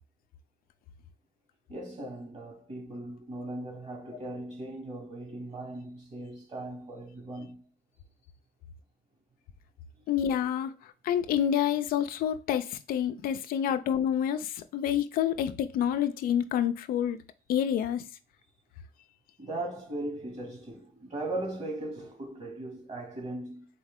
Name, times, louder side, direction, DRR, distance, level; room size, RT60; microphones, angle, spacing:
voice 1, 1.7-7.6 10.0-10.1 19.4-23.7, right 2 dB, 50° right, 2.4 m, -38 dB
voice 2, 10.1-10.7 11.0-17.2 17.5-18.0, left 9 dB, 85° left, 0.4 m, -28 dB
4.3 x 3.1 x 3.6 m
cardioid pair, 75°, 15 cm